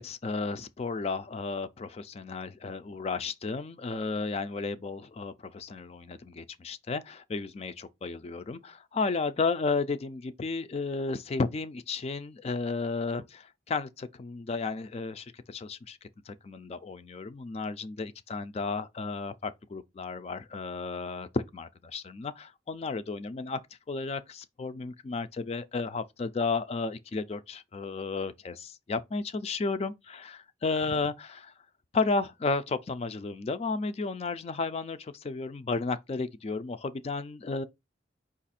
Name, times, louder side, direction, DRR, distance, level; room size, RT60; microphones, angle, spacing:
voice 1, 0.0-16.0 16.3-23.6 23.9-31.5 31.9-37.6, left 4 dB, 30° left, 0.3 m, -33 dB
5.3 x 2.4 x 4.1 m
head